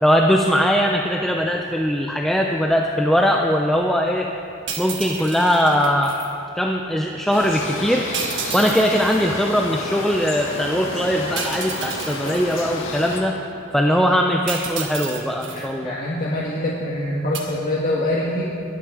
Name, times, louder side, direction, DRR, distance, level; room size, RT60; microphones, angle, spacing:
voice 1, 0.0-4.3 4.8-6.1 6.6-8.0 8.5-13.4 13.7-16.0, equal, ahead, 1 dB, 0.6 m, -20 dB
sound 1, 4.7-6.3 8.1-9.2 11.4-12.6 14.5-15.7 17.3-17.4, right 6 dB, 60° right, 1.5 m, -31 dB
sound 2, 7.3-13.2, left 2 dB, 70° left, 2.0 m, -31 dB
voice 2, 15.4-18.4, left 1 dB, 40° left, -5 dB, 1.7 m, -25 dB
21.0 x 9.7 x 4.9 m, 2.7 s
head